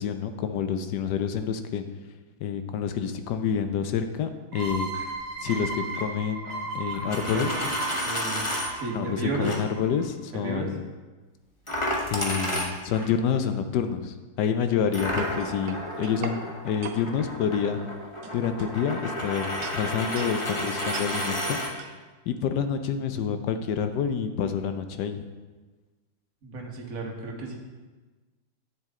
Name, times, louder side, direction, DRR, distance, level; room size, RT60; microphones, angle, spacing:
voice 1, 0.0-1.8 2.4-4.9 5.4-7.6 8.9-10.9 12.1-17.8 18.3-21.6 22.3-25.3, left 7 dB, 70° left, 8 dB, 1.0 m, -28 dB
sound 1, 4.5-10.0, right 3 dB, 30° right, 2.1 m, -35 dB
Coin (dropping), 7.0-8.7 9.4-9.6 11.7-13.1 14.9-21.7, equal, 20° left, 0.8 m, -31 dB
voice 2, 8.0-8.5 8.8-9.5 10.4-10.7 26.4-27.6, right 3 dB, 45° right, -1 dB, 1.7 m, -32 dB
sound 2, 14.8-16.4 16.8-17.0 17.7-17.9 18.2-19.2 19.6-20.4 20.9-21.1 21.8-21.9, right 7 dB, 85° right, 1.6 m, -40 dB
10.5 x 7.7 x 3.7 m, 1.3 s
omnidirectional pair, 2.3 m